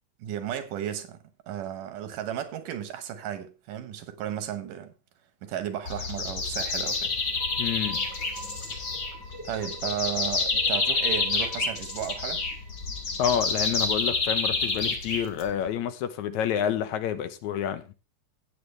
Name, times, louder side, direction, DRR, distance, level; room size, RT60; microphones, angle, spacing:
voice 1, 0.2-1.2 1.5-4.9 5.4-7.1 9.4-12.4, right 10 dB, 90° right, 2.9 m, -34 dB
sound 1, 5.9-15.7, left 3 dB, 35° left, 1.9 m, -28 dB
sound 2, 6.6-13.3, right 2 dB, 5° right, 2.1 m, -45 dB
voice 2, 7.6-8.1 13.2-17.8, left 9 dB, 75° left, 2.1 m, -28 dB
15.5 x 8.6 x 3.3 m
omnidirectional pair, 3.7 m